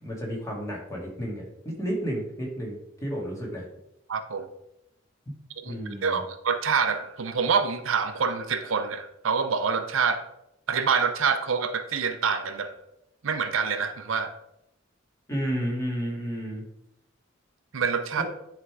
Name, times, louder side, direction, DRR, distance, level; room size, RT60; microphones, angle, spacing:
voice 1, 0.0-3.7 5.6-6.2 15.3-16.6 18.2-18.3, equal, 15° left, -2 dB, 1.8 m, -32 dB
voice 2, 4.1-4.5 5.6-10.2 10.7-12.7 13.2-14.4 17.7-18.2, right 5 dB, 75° right, 9 dB, 0.6 m, -26 dB
10.0 x 3.4 x 4.7 m, 0.83 s
head